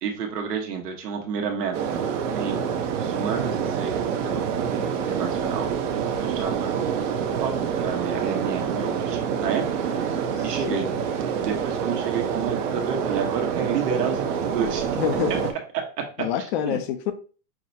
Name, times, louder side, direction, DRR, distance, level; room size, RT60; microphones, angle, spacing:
voice 1, 0.0-2.0 2.4-5.7 6.2-6.7 7.4-9.6 10.0-10.2 10.4-10.9 11.4-14.9 16.6-16.8, right 6 dB, 80° right, 1.3 m, -30 dB
sound 1, 1.7-15.5, right 7 dB, 50° right, 0.7 m, -27 dB
voice 2, 10.3-10.8 15.0-15.5 16.2-17.1, left 9 dB, 45° left, 0.4 m, -27 dB
5.7 x 2.1 x 2.7 m
hypercardioid pair, 135°, 48 cm